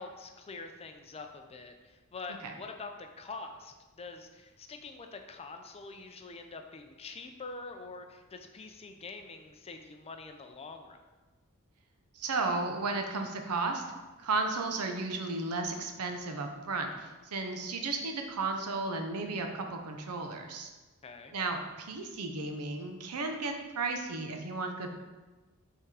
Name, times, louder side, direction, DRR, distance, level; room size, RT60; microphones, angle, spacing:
voice 1, 0.0-11.0 21.0-21.3, left 3 dB, 25° left, 5 dB, 0.5 m, -45 dB
voice 2, 12.1-13.8 14.2-20.7 21.3-24.9, right 3 dB, 85° right, 4 dB, 0.7 m, -34 dB
5.6 x 3.6 x 4.8 m, 1.2 s
head